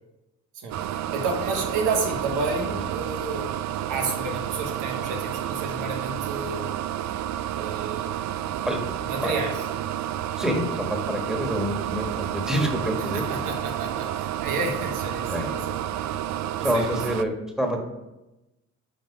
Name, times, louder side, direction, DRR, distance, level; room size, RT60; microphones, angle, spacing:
voice 1, 0.5-6.7 7.6-8.2 9.0-9.7 13.1-15.8 16.7-16.9, right 3 dB, 90° right, 2 dB, 1.4 m, -31 dB
sound 1, 0.7-17.2, right 11 dB, 65° right, 0.4 m, -30 dB
voice 2, 10.4-13.5 15.3-15.4 16.6-17.3 17.6-17.8, equal, ahead, 2 dB, 1.6 m, -27 dB
10.0 x 3.9 x 5.0 m, 0.98 s
cardioid pair, 90°, 30 cm